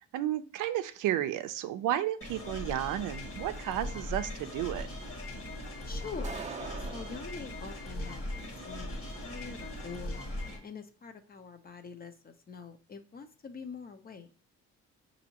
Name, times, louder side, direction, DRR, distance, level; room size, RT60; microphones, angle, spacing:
voice 1, 0.1-4.9, right 12 dB, 85° right, 10 dB, 0.5 m, -32 dB
sound 1, 2.2-10.6, left 1 dB, 45° left, 1.4 m, -39 dB
voice 2, 5.8-6.5 6.8-10.2 10.6-14.3, left 5 dB, 30° left, 8 dB, 0.6 m, -45 dB
sound 2, 6.2-7.3, right 5 dB, 25° right, 0.5 m, -41 dB
5.1 x 2.8 x 2.8 m, 0.40 s
cardioid pair, 90°, 30 cm